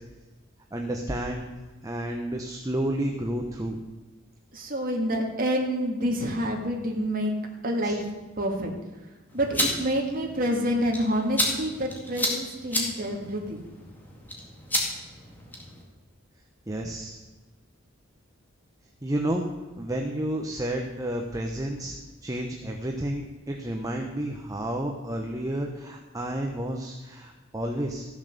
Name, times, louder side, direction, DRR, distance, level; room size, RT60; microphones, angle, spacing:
voice 1, 0.7-1.5 1.8-3.8 7.8-8.0 16.7-17.2 19.0-19.5 19.8-22.0 22.2-28.1, right 1 dB, 15° right, 2 dB, 0.9 m, -31 dB
voice 2, 4.5-7.3 7.6-8.0 8.4-8.7 9.3-13.7, equal, 45° right, 0 dB, 2.0 m, -27 dB
sound 1, 9.3-15.8, left 1 dB, 10° left, 2.1 m, -32 dB
14.5 x 7.2 x 6.7 m, 1.2 s
head